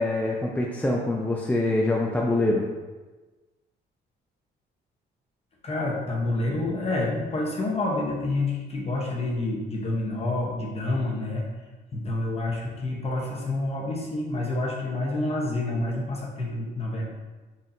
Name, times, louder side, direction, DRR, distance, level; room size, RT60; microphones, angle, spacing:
voice 1, 0.0-2.7, left 2 dB, 10° left, -1 dB, 0.3 m, -24 dB
voice 2, 5.6-11.4 11.9-17.1, left 2 dB, 30° left, -2 dB, 1.0 m, -28 dB
4.2 x 3.6 x 2.7 m, 1.2 s
cardioid pair, 110°, 19 cm